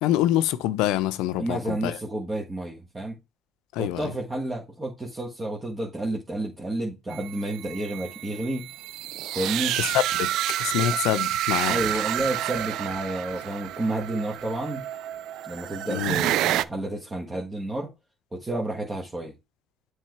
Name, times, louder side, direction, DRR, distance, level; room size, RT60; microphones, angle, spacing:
voice 1, 0.0-2.0 3.7-4.1 9.8-10.3 10.6-11.8 15.9-16.2, left 13 dB, 85° left, 0.5 m, -25 dB
voice 2, 1.4-3.2 3.8-8.7 9.3-9.8 10.8-11.0 11.7-14.8 15.5-17.9 18.3-19.3, right 1 dB, 20° right, 1.5 m, -30 dB
sound 1, 7.1-16.6, right 13 dB, 75° right, 0.3 m, -29 dB
7.4 x 3.3 x 4.6 m
cardioid pair, 90°, 0 cm